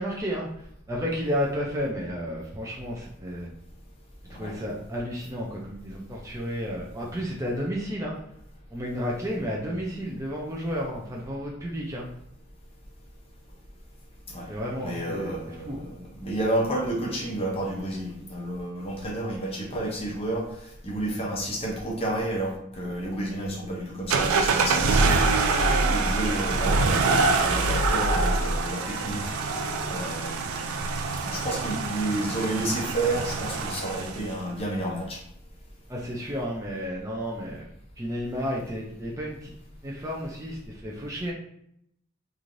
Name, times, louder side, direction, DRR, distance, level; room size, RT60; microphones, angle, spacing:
voice 1, 0.0-3.5 4.3-8.2 8.7-12.1 14.5-15.8 35.9-37.7 38.0-39.5 39.8-41.3, equal, 15° right, -3 dB, 0.3 m, -32 dB
voice 2, 14.8-20.5 20.8-25.2 25.8-29.3 29.6-30.5 31.2-35.2, right 1 dB, 30° left, -1 dB, 0.6 m, -31 dB
sound 1, 24.1-34.3, right 3 dB, 90° right, 0.4 m, -25 dB
3.0 x 2.4 x 2.5 m, 0.74 s
head